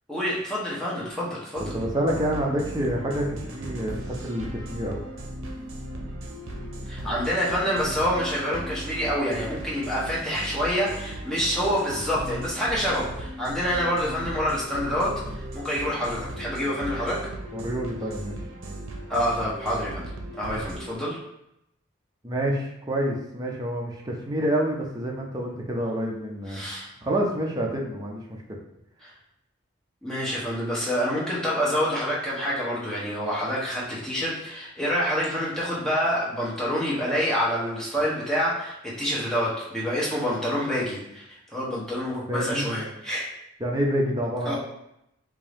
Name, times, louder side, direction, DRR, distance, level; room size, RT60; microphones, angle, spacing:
voice 1, 0.1-1.7 6.9-17.3 19.1-20.0 20.4-21.2 26.5-26.9 30.0-41.2 41.5-43.3 44.4-44.6, equal, 5° left, -7 dB, 0.9 m, -27 dB
voice 2, 1.6-5.0 17.5-18.3 22.2-26.6 27.0-28.4 42.3-42.7 43.6-44.6, right 1 dB, 20° right, -1 dB, 0.5 m, -28 dB
sound 1, 1.6-20.9, right 1 dB, 85° right, 0.6 m, -37 dB
3.7 x 2.7 x 3.4 m, 0.82 s
head